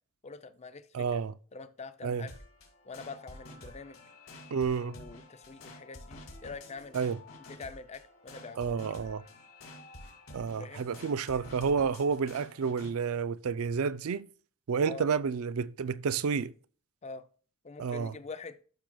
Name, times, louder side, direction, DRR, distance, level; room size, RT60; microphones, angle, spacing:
voice 1, 0.2-1.2 1.5-2.3 2.8-4.0 4.8-7.0 7.6-8.8 10.6-10.9 14.9-15.0 17.0-17.3 17.6-18.6, left 4 dB, 30° left, 0.5 m, -45 dB
voice 2, 0.9-1.3 2.0-2.3 4.5-4.9 6.9-7.2 8.6-9.2 10.3-14.2 14.7-16.5 17.8-18.1, right 6 dB, 80° right, 0.4 m, -30 dB
sound 1, 2.3-12.9, left 1 dB, 70° left, 2.6 m, -50 dB
11.5 x 6.0 x 2.3 m
head